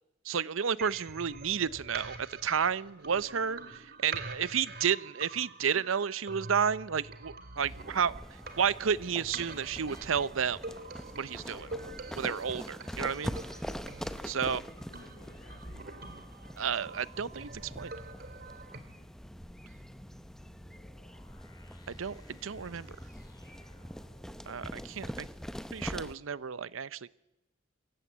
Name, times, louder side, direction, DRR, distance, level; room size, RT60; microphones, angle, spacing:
voice 1, 0.2-3.6 4.0-8.1 8.6-10.6 11.2-11.6 12.2-13.4 14.3-14.6 16.6-17.9 21.9-22.9 24.5-25.3 25.7-27.1, right 7 dB, 85° right, 18 dB, 0.7 m, -31 dB
sound 1, 0.8-18.8, right 3 dB, 50° right, 2.2 m, -46 dB
sound 2, 7.6-26.2, equal, ahead, 0.7 m, -44 dB
voice 2, 11.6-12.0 14.1-16.0 18.9-19.2, left 1 dB, 70° left, 6 dB, 4.5 m, -57 dB
sound 3, 19.2-25.4, equal, 20° left, 2.9 m, -54 dB
25.5 x 15.0 x 8.1 m, 0.95 s
head